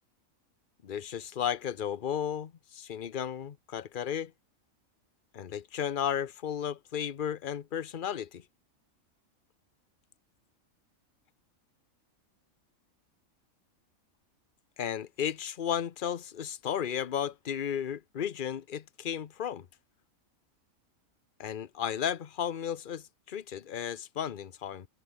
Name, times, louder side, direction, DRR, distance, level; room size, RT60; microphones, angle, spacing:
voice 1, 0.8-4.3 5.3-8.4 14.8-19.7 21.4-24.9, left 9 dB, 45° left, 0.9 m, -34 dB
omnidirectional pair, 1.4 m